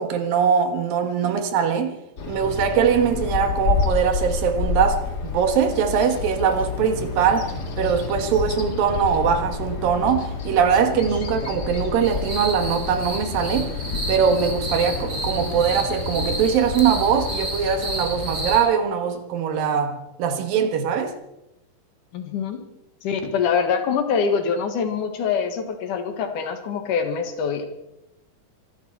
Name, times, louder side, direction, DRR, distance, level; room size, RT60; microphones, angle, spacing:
voice 1, 0.0-2.0 2.3-13.7 14.1-21.1, right 7 dB, 80° right, 3.2 m, -22 dB
Bird vocalization bird call bird song, 2.2-18.6, left 4 dB, 35° left, 1.8 m, -29 dB
sound 1, 12.0-18.6, right 1 dB, 35° right, 5.7 m, -32 dB
voice 2, 22.1-22.6 23.0-27.7, left 6 dB, 70° left, 3.0 m, -24 dB
25.0 x 12.5 x 4.6 m
omnidirectional pair, 4.0 m